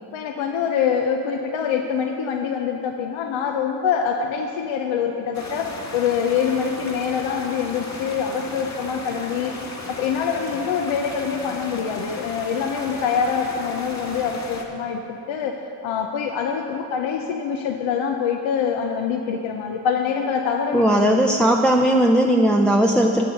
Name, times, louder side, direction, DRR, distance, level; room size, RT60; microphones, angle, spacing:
voice 1, 0.1-9.5 9.9-15.5 15.8-21.4, left 7 dB, 65° left, 3 dB, 0.8 m, -25 dB
sound 1, 5.3-14.6, left 2 dB, 35° left, 1.8 m, -36 dB
voice 2, 20.7-23.2, right 1 dB, ahead, 0 dB, 0.6 m, -17 dB
8.5 x 6.4 x 7.9 m, 2.9 s
hypercardioid pair, 50°, 50 cm